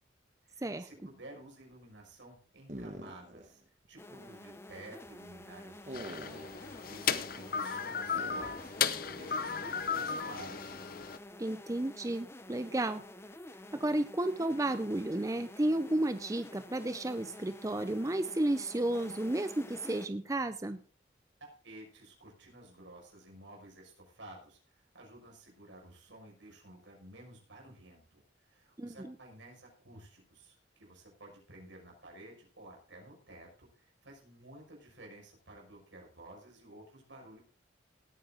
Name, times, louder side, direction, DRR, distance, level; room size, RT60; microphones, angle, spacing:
voice 1, 0.4-3.6 3.9-6.6 6.8-10.8 21.6-37.4, right 1 dB, 80° right, 0 dB, 5.9 m, -53 dB
sound 1, 2.7-3.5 3.8-3.9 5.9-6.7 8.1-8.7, right 1 dB, 40° right, 1.5 m, -45 dB
sound 2, 4.0-20.1, left 1 dB, 15° left, 0.8 m, -50 dB
sound 3, 5.9-11.2, left 7 dB, 50° left, 0.8 m, -35 dB
voice 2, 11.4-13.0 13.7-20.8 28.8-29.1, right 1 dB, 15° right, 11 dB, 0.5 m, -32 dB
18.0 x 9.1 x 3.9 m, 0.40 s
head